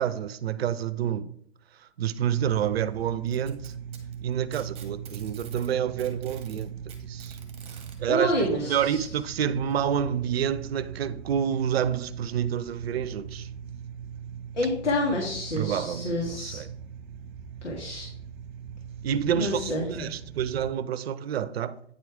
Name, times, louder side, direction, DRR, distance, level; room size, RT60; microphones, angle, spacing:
voice 1, 0.0-1.3 2.0-3.7 4.2-7.4 8.0-13.5 15.5-16.7 19.0-21.8, right 9 dB, 60° right, 0.7 m, -28 dB
sound 1, 2.3-20.7, right 8 dB, 40° right, 1.1 m, -40 dB
Packing tape duct tape, 3.3-5.7 6.0-8.0 9.1-9.2 9.7-9.8 10.7-10.8, right 7 dB, 15° right, 1.8 m, -48 dB
voice 2, 8.1-9.0 14.6-16.6 17.6-18.1 19.3-20.2, left 1 dB, 80° left, 2.0 m, -28 dB
9.4 x 4.7 x 4.8 m
hypercardioid pair, 125°, 35 cm